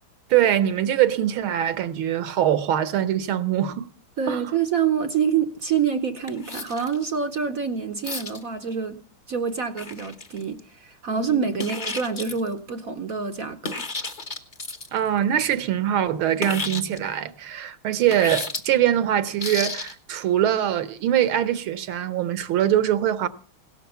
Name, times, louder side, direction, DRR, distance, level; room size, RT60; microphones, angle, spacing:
voice 1, 0.3-3.9 4.3-4.5 11.2-11.5 14.9-23.3, right 11 dB, 75° right, 1.7 m, -23 dB
voice 2, 4.2-9.0 9.3-13.8, right 7 dB, 55° right, 1.0 m, -26 dB
sound 1, 6.3-7.1 8.0-8.4 9.7-10.6 11.6-12.5 13.6-15.0 16.4-17.0 18.1-18.6 19.4-19.9, left 3 dB, 25° left, 1.1 m, -32 dB
17.5 x 13.0 x 5.6 m
omnidirectional pair, 2.3 m